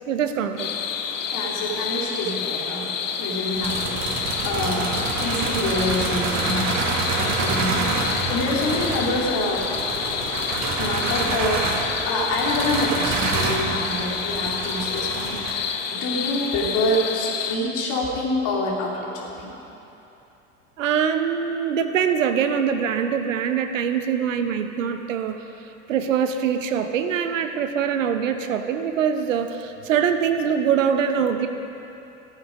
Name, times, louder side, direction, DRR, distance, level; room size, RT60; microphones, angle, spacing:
voice 1, 0.1-0.7 20.8-25.4 25.9-31.5, right 7 dB, 80° right, 7 dB, 0.9 m, -23 dB
sound 1, 0.6-17.6, left 7 dB, 80° left, 0.9 m, -29 dB
voice 2, 1.3-2.9 3.2-9.7 10.8-19.5, left 1 dB, 50° left, -3 dB, 2.9 m, -27 dB
sound 2, 3.5-15.5, right 4 dB, 45° right, 1.6 m, -27 dB
15.0 x 8.7 x 5.1 m, 2.9 s
hypercardioid pair, 75°, 38 cm